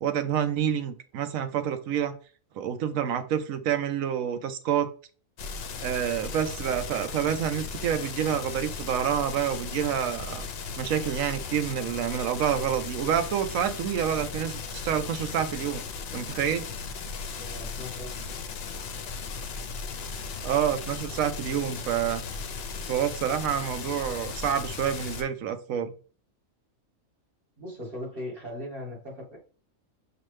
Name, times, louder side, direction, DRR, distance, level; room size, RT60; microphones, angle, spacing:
voice 1, 0.0-2.1 2.6-4.9 5.8-10.5 10.8-15.8 16.1-16.7 20.4-22.2 22.9-25.9, right 9 dB, 75° right, 9 dB, 1.0 m, -28 dB
sound 1, 5.4-25.2, left 5 dB, 60° left, 0.7 m, -36 dB
voice 2, 17.4-18.3 27.6-29.4, left 1 dB, 40° right, -2 dB, 1.7 m, -39 dB
5.7 x 2.7 x 3.2 m, 0.38 s
omnidirectional pair, 1.5 m